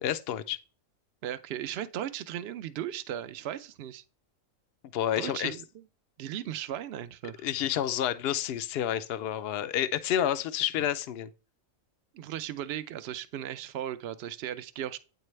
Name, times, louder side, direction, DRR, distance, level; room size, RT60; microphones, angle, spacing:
voice 1, 0.0-0.6 4.9-5.5 7.4-11.3, left 10 dB, 60° left, 0.7 m, -29 dB
voice 2, 1.2-4.0 5.2-5.8 6.2-7.5 12.1-15.0, right 11 dB, 60° right, 0.7 m, -36 dB
8.9 x 4.7 x 3.2 m
omnidirectional pair, 1.4 m